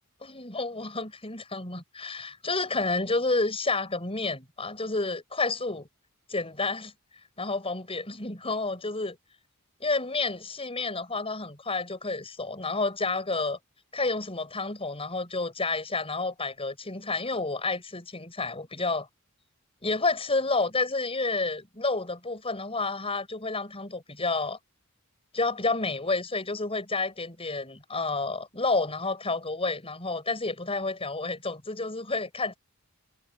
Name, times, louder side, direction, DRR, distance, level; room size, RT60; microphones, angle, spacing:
voice 1, 0.2-5.9 6.3-6.9 7.4-9.2 9.8-13.6 13.9-19.1 19.8-24.6 25.3-32.6, left 3 dB, 25° left, 7.4 m, -30 dB
head